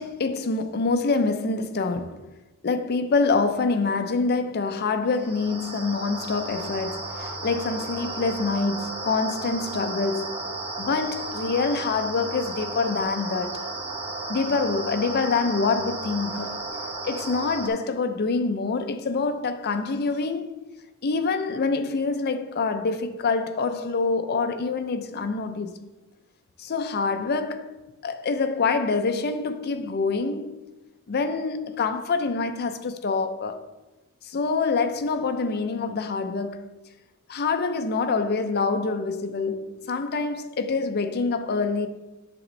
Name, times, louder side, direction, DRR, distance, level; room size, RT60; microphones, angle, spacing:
voice 1, 0.0-2.3 2.6-10.3 10.8-13.6 14.3-16.6 17.0-20.6 21.0-25.9 26.6-27.8 28.0-30.6 31.1-33.6 34.2-36.7 37.3-41.9, left 4 dB, 50° left, 0.5 m, -26 dB
sound 1, 5.1-17.7, right 2 dB, 30° right, 1.0 m, -34 dB
7.7 x 6.0 x 3.2 m
head